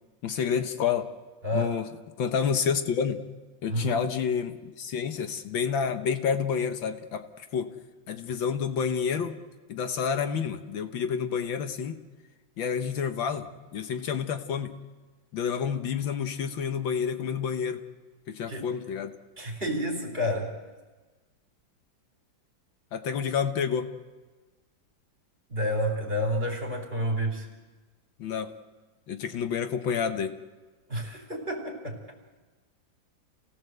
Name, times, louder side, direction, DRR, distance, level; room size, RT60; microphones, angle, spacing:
voice 1, 0.2-1.1 1.5-1.9 2.2-3.3 3.6-7.7 8.1-9.4 9.7-12.0 12.6-14.8 15.3-17.8 18.3-19.1 22.9-23.9 28.2-28.5 29.1-30.4, left 7 dB, 75° left, 8 dB, 1.9 m, -29 dB
voice 2, 1.4-1.8 3.7-4.0 18.5-18.6 19.4-20.5 25.5-27.5 30.9-32.0, equal, 30° right, 1 dB, 4.3 m, -29 dB
28.0 x 17.5 x 7.9 m, 1.3 s
omnidirectional pair, 2.1 m